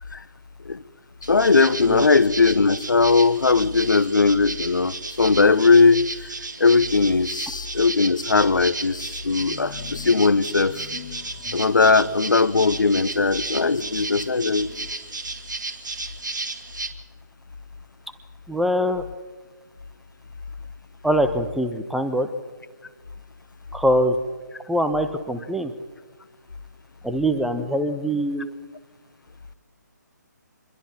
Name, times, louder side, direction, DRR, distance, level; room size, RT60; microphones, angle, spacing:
sound 1, 1.2-16.9, right 3 dB, 70° right, 2.3 m, -34 dB
voice 1, 1.3-6.3 6.6-10.8 11.5-14.7, left 4 dB, 80° left, 16 dB, 1.1 m, -19 dB
sound 2, 9.4-15.1, left 8 dB, 35° left, 2.2 m, -43 dB
voice 2, 18.5-19.0 21.0-22.3 23.7-24.2 24.7-25.7 27.0-28.5, equal, ahead, 7 dB, 1.0 m, -23 dB
27.0 x 21.5 x 4.4 m, 1.4 s
figure-of-eight pair, 150°, 10 cm